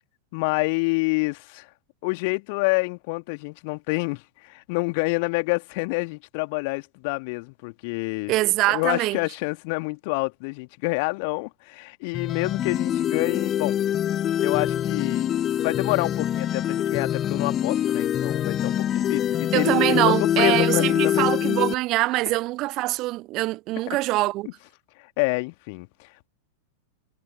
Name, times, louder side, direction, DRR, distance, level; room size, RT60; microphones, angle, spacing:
voice 1, 0.3-1.7 2.0-8.3 8.7-13.8 14.4-15.3 15.6-21.3 24.4-24.5 25.2-26.3, left 30 dB, 45° left, 2.2 m, -28 dB
voice 2, 8.3-9.2 19.5-24.5, right 19 dB, 40° right, 0.6 m, -23 dB
sound 1, 12.1-21.7, left 10 dB, 30° left, 2.3 m, -24 dB
figure-of-eight pair, 90°, 0 cm